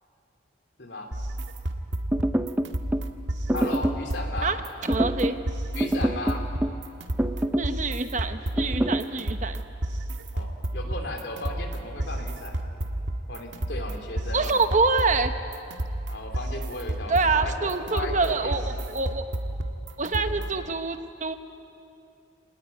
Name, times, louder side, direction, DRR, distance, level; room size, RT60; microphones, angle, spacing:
voice 1, 0.8-1.1 3.5-4.5 5.7-6.4 10.3-12.6 13.3-14.6 16.1-18.7, left 2 dB, 75° left, 3 dB, 3.3 m, -35 dB
sound 1, 1.1-20.7, right 1 dB, 85° right, 1.5 m, -32 dB
sound 2, 2.1-3.1 3.5-4.1 4.9-5.4 5.8-6.8 7.2-7.8 8.6-9.1, right 1 dB, 10° right, 0.6 m, -26 dB
voice 2, 4.8-5.4 7.6-9.6 14.3-15.4 17.1-18.6 18.9-19.2 20.0-21.3, right 4 dB, 40° right, 8 dB, 1.1 m, -26 dB
25.5 x 19.5 x 9.4 m, 2.6 s
head